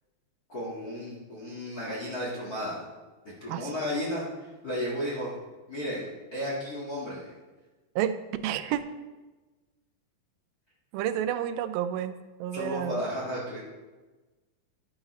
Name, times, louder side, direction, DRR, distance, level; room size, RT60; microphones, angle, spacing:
voice 1, 0.5-2.8 3.4-5.3 5.7-6.1 6.3-7.3 12.5-13.6, equal, 45° left, -5 dB, 1.2 m, -33 dB
voice 2, 8.0-8.8 10.9-13.0, right 10 dB, 90° right, 11 dB, 2.4 m, -30 dB
11.5 x 9.7 x 3.1 m, 1.2 s
omnidirectional pair, 4.1 m